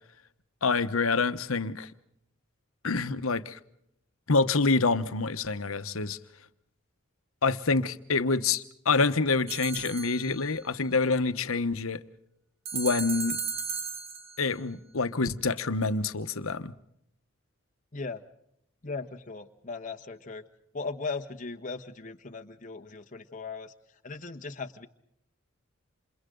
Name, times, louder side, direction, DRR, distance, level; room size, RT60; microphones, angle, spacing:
voice 1, 0.6-1.9 2.8-3.6 4.3-6.2 7.4-12.0 12.7-13.4 14.4-16.7, left 4 dB, 80° left, 1.1 m, -27 dB
sound 1, 9.5-10.5 12.6-14.5, right 5 dB, 75° right, 2.4 m, -35 dB
voice 2, 17.9-18.2 18.8-20.4 20.7-23.7 24.0-24.9, left 4 dB, 35° left, 1.3 m, -38 dB
29.0 x 28.0 x 3.9 m
head